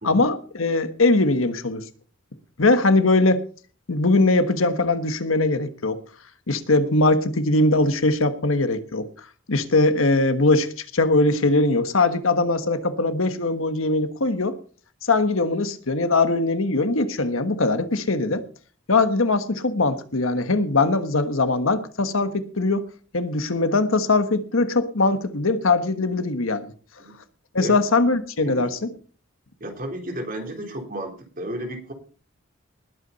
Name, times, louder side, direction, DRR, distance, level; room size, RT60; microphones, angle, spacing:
voice 1, 0.0-1.8 2.6-3.4 3.9-6.0 6.5-9.1 9.5-14.6 15.0-18.4 18.9-22.9 23.1-26.7 27.5-28.9, left 2 dB, 85° left, 9 dB, 1.4 m, -21 dB
voice 2, 28.4-28.7 29.6-31.9, right 1 dB, 45° right, 2 dB, 3.7 m, -33 dB
20.0 x 8.7 x 4.1 m, 0.40 s
head